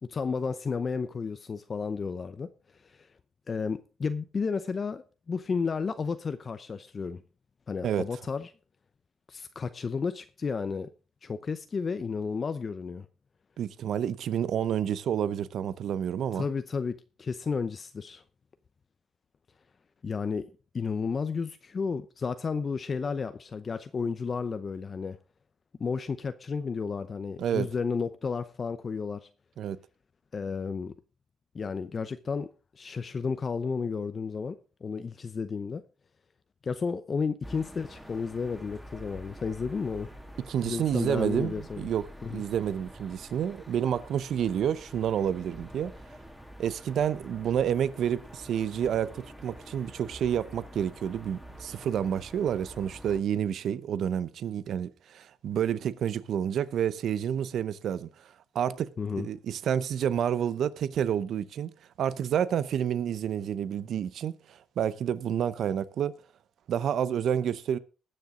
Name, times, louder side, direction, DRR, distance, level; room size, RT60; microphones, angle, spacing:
voice 1, 0.0-2.5 2.8-3.1 3.5-7.2 7.7-8.5 9.3-10.9 11.2-13.1 16.3-18.2 20.0-20.5 20.7-25.2 25.8-29.3 30.3-30.9 31.5-32.5 32.7-34.6 34.8-35.8 36.6-40.1 40.6-41.9 42.2-42.4 59.0-59.3, left 5 dB, 40° left, 0.7 m, -32 dB
voice 2, 13.6-16.5 27.4-27.7 29.6-29.8 40.5-45.9 46.6-58.3 58.5-58.9 59.2-61.7 62.0-66.1 66.7-67.8, right 9 dB, 70° right, 0.8 m, -29 dB
sound 1, 37.4-53.2, equal, ahead, 2.2 m, -47 dB
20.0 x 6.7 x 3.8 m
cardioid pair, 90°, 0 cm